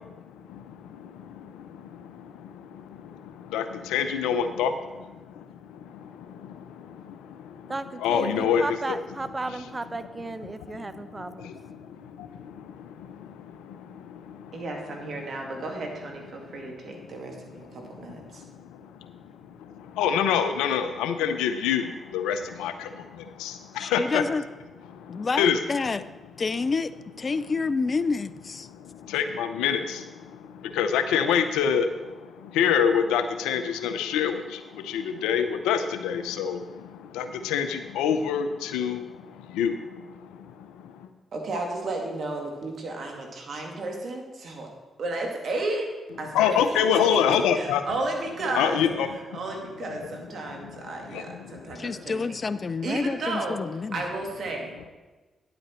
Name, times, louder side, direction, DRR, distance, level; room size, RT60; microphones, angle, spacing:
voice 1, 0.0-7.7 8.0-8.8 10.7-10.9 11.2-14.5 18.0-24.2 24.9-25.6 28.7-41.1 46.3-47.8 48.5-49.4 50.0-50.1 51.1-51.6, left 8 dB, 85° left, 9 dB, 0.6 m, -28 dB
voice 2, 7.7-11.5, right 2 dB, 30° right, 12 dB, 0.7 m, -34 dB
voice 3, 14.5-18.4 41.3-44.7 45.0-45.9 46.2-46.6 46.9-48.8 49.1-52.2 52.8-53.6 53.9-54.7, right 2 dB, 65° right, 2 dB, 2.1 m, -33 dB
voice 4, 23.8-24.4 25.1-26.0 26.4-26.9 27.2-28.7 51.8-54.0, left 4 dB, 45° left, 15 dB, 0.4 m, -28 dB
10.0 x 7.8 x 4.4 m, 1.2 s
hypercardioid pair, 45°, 0 cm